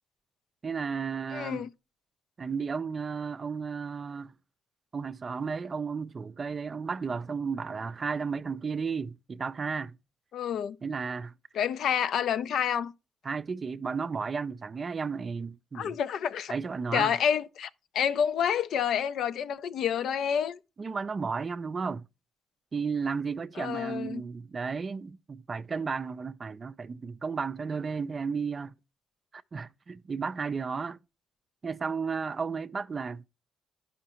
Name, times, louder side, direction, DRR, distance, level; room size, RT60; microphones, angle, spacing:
voice 1, 0.6-1.7 2.4-4.3 4.9-10.0 10.8-11.3 13.2-15.9 16.5-17.2 20.8-22.0 22.7-28.7 29.3-31.0 31.6-33.2, right 5 dB, 35° right, 0.4 m, -33 dB
voice 2, 1.3-1.7 10.3-10.8 11.5-12.9 15.7-16.5 16.9-17.7 17.9-20.6 23.6-24.2, left 8 dB, 70° left, 0.4 m, -28 dB
11.0 x 5.6 x 2.9 m
cardioid pair, 90°, 0 cm